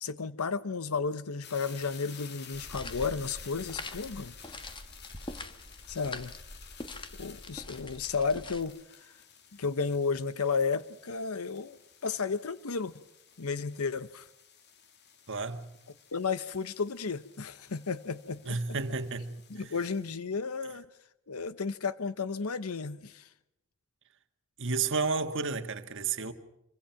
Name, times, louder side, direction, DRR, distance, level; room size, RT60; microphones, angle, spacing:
voice 1, 0.0-4.3 5.9-6.3 7.2-9.1 9.5-11.8 12.0-12.9 13.4-14.3 16.1-18.6 19.5-20.9 21.3-23.3, left 5 dB, 80° left, 0.9 m, -33 dB
sound 1, 1.4-20.1, left 7 dB, 50° left, 2.2 m, -53 dB
sound 2, 2.5-8.6, left 2 dB, 25° left, 1.4 m, -44 dB
voice 2, 15.3-15.7 18.5-19.7 24.6-26.3, right 4 dB, 60° right, 1.7 m, -32 dB
26.0 x 24.0 x 5.8 m
head